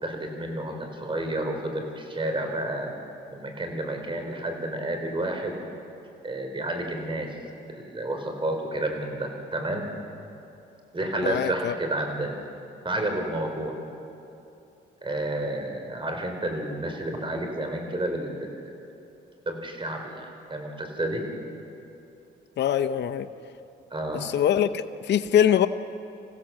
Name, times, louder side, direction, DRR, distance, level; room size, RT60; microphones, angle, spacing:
voice 1, 0.0-2.9 3.3-5.6 6.2-7.4 7.7-9.9 10.9-12.3 12.8-13.7 15.0-18.5 19.5-21.2 23.9-24.2, right 1 dB, 25° right, 3 dB, 3.7 m, -30 dB
voice 2, 11.2-11.7 22.6-23.3 24.1-25.7, left 9 dB, 60° left, 8 dB, 0.8 m, -23 dB
26.5 x 15.5 x 7.3 m, 2.8 s
cardioid pair, 90°, 20 cm